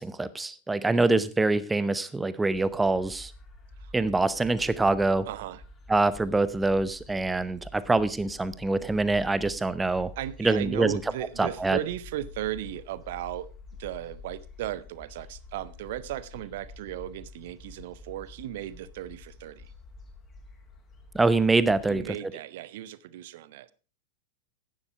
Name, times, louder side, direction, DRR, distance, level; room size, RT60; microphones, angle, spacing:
voice 1, 0.0-3.3 3.9-5.3 5.9-10.1 10.4-11.0 11.4-11.8 21.1-22.0, right 3 dB, 10° right, 15 dB, 0.8 m, -25 dB
sound 1, 2.5-22.1, left 2 dB, 25° left, 2.5 m, -48 dB
voice 2, 5.3-5.6 10.2-13.5 13.8-19.7 21.9-23.7, right 13 dB, 55° right, 18 dB, 0.7 m, -36 dB
11.0 x 9.8 x 4.7 m, 0.34 s
figure-of-eight pair, 90°, 0 cm